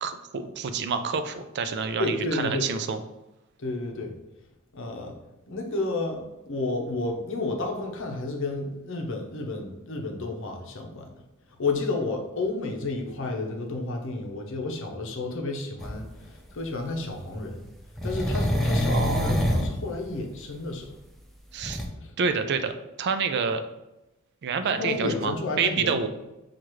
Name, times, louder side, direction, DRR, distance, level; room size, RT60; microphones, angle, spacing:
voice 1, 0.0-3.0 18.9-19.4 21.5-21.8 22.2-23.6 24.4-26.1, right 5 dB, 55° right, 9 dB, 0.4 m, -28 dB
voice 2, 2.0-2.7 3.6-4.1 4.7-5.2 5.5-11.1 11.6-17.7 18.0-20.9 22.0-22.1 24.6-26.0, left 2 dB, 65° left, 2 dB, 0.7 m, -31 dB
sound 1, 15.8-15.9 17.9-19.7 21.6-21.9, equal, ahead, 0.5 m, -25 dB
6.3 x 2.4 x 3.0 m, 0.98 s
head